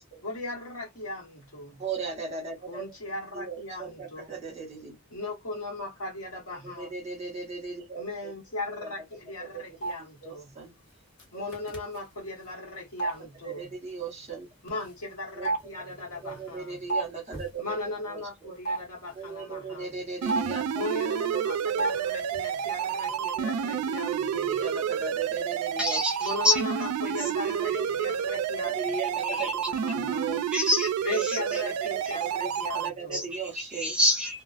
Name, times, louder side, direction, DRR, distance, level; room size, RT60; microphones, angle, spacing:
voice 1, 0.2-1.8 2.7-4.3 5.1-6.9 8.0-10.5 11.3-13.7 14.6-16.8 17.6-19.9 20.7-24.5 26.2-28.9 29.1-30.2 31.0-33.2, left 2 dB, 75° left, 1.3 m, -38 dB
voice 2, 1.8-2.9 3.3-5.0 6.5-8.3 8.8-8.9 9.4-9.6 10.2-10.7 11.3-11.4 13.4-14.5 15.3-15.5 16.2-17.8 18.1-18.5 19.1-20.7 21.0-21.8 23.1-26.1 27.5-27.9 28.3-30.4 31.1-34.0, right 5 dB, 30° right, 1.0 m, -38 dB
sound 1, 9.8-9.9 11.2-11.3 11.5-12.0 13.0-13.1 14.8-14.9 15.4-17.1 17.3-17.5 18.6-18.8 20.3-20.6 21.8-22.0 22.2-22.4, right 3 dB, 55° left, 1.4 m, -30 dB
sound 2, 20.2-32.9, right 8 dB, 90° right, 0.3 m, -30 dB
voice 3, 25.8-26.6 29.3-29.5 30.5-31.6 32.0-32.2 33.1-33.2 33.8-34.4, left 1 dB, 5° right, 0.3 m, -27 dB
2.4 x 2.4 x 2.4 m
head